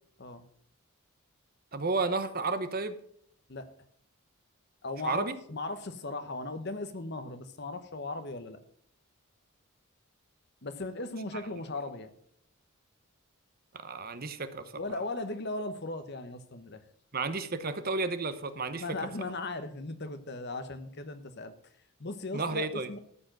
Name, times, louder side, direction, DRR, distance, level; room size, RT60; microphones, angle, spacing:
voice 1, 1.7-2.9 5.0-5.3 13.7-14.6 17.1-18.8 22.3-22.9, right 3 dB, 40° right, 10 dB, 0.9 m, -32 dB
voice 2, 4.8-8.6 10.6-12.1 14.7-16.8 18.7-21.5 22.0-23.0, left 2 dB, 50° left, 10 dB, 1.0 m, -37 dB
13.5 x 4.8 x 7.6 m, 0.68 s
head